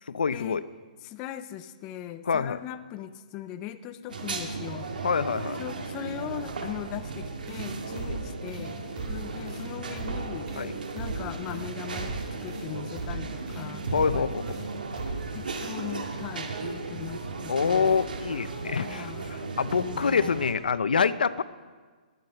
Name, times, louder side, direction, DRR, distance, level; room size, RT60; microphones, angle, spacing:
voice 1, 0.1-0.6 2.2-2.6 5.0-5.6 8.0-8.2 10.6-10.7 13.9-14.6 17.5-21.4, left 6 dB, 90° left, 14 dB, 0.7 m, -26 dB
voice 2, 1.0-4.9 5.6-8.8 9.1-10.5 10.9-12.2 12.4-13.8 14.1-14.2 15.3-18.0 18.7-19.3 19.7-20.4, left 11 dB, 15° left, 10 dB, 0.4 m, -39 dB
sound 1, 4.1-20.5, right 4 dB, 80° right, 2.2 m, -36 dB
sound 2, 7.5-7.7 8.0-8.2 8.5-8.6 9.0-9.2 9.5-9.6 10.0-10.2 10.5-10.6 11.0-11.2 11.5-11.6 12.0-12.2 12.5-12.6 13.0-13.2 13.5-13.6 14.0-14.2 14.5-14.6 15.0-15.2, right 2 dB, 20° right, 3.5 m, -36 dB
21.0 x 9.5 x 5.6 m, 1.5 s
hypercardioid pair, 170°, 5 cm